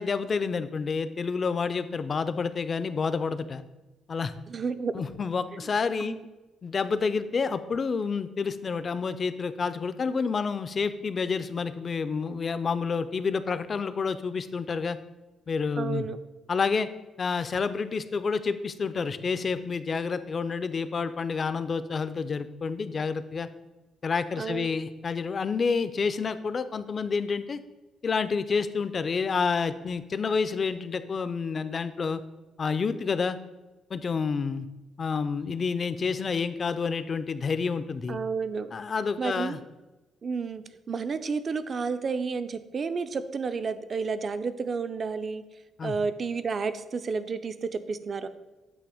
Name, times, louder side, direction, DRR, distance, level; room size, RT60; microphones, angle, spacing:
voice 1, 0.0-3.6 4.1-4.3 4.9-6.2 6.6-15.0 15.5-16.1 16.5-16.9 17.2-23.5 24.0-27.6 28.0-32.2 32.6-33.4 33.9-34.7 35.0-38.2 38.7-39.6 45.8-46.0, left 5 dB, 40° left, 13 dB, 0.4 m, -29 dB
voice 2, 4.5-4.9 5.6-5.7 6.0-6.2 15.8-16.2 24.4-24.7 38.1-38.7 39.2-39.6 40.2-45.4 45.8-48.3, right 5 dB, 45° right, 12 dB, 0.4 m, -31 dB
8.5 x 2.9 x 4.9 m, 1.1 s
cardioid pair, 90°, 0 cm